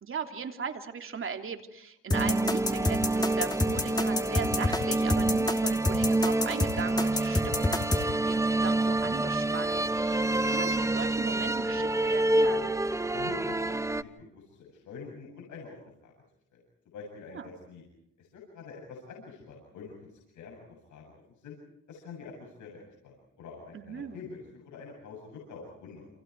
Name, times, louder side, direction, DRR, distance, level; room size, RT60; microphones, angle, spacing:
voice 1, 0.0-12.7 17.3-17.5 23.7-24.2, right 6 dB, 45° right, 5 dB, 3.1 m, -38 dB
sound 1, 2.1-8.0, left 2 dB, 15° left, 2.8 m, -28 dB
sound 2, 2.1-14.0, right 2 dB, 10° right, 1.0 m, -27 dB
voice 2, 13.1-15.8 16.0-16.1 16.5-16.6 16.9-17.8 18.2-20.6 20.9-21.6 21.9-26.1, left 5 dB, 75° left, -1 dB, 7.6 m, -46 dB
29.0 x 28.0 x 4.8 m, 0.77 s
cardioid pair, 90°, 30 cm